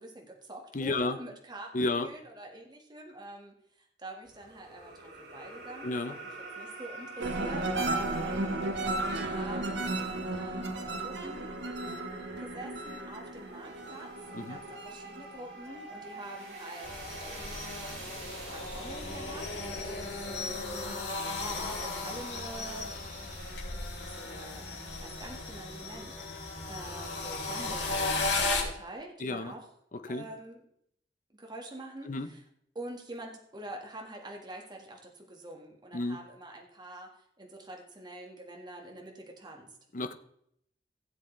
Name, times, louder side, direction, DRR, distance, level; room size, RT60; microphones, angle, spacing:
voice 1, 0.0-6.3 6.6-11.6 12.4-17.5 18.5-19.5 19.8-22.9 23.2-23.4 23.9-29.6 30.1-30.6 31.3-32.4 32.8-37.1 37.4-39.7, right 1 dB, 25° right, 1 dB, 1.7 m, -46 dB
voice 2, 0.7-1.2 1.7-2.1 5.8-6.2 14.3-14.6 29.2-29.5 29.9-30.2 32.1-32.3 35.9-36.2 39.9-40.1, left 2 dB, 45° left, 9 dB, 0.8 m, -32 dB
sound 1, 4.2-23.5, right 2 dB, 70° right, 4.0 m, -47 dB
sound 2, 7.2-16.0 16.4-16.9, right 2 dB, 90° right, 1.2 m, -34 dB
sound 3, 16.8-28.6, left 3 dB, 70° left, 3.2 m, -35 dB
16.5 x 7.8 x 3.3 m, 0.71 s
head